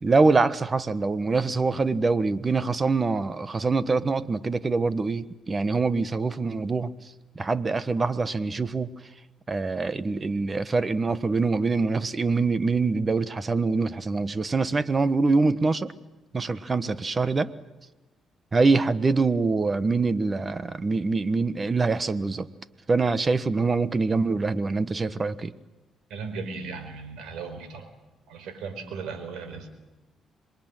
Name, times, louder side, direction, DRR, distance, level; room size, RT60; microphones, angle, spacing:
voice 1, 0.0-6.9 7.3-8.9 9.5-15.9 16.3-17.5 18.5-22.5 22.9-25.5, right 3 dB, 30° right, 15 dB, 1.3 m, -24 dB
voice 2, 26.1-27.9 28.3-29.7, right 5 dB, 85° right, 9 dB, 4.8 m, -36 dB
26.5 x 22.0 x 9.1 m, 1.1 s
cardioid pair, 90°, 0 cm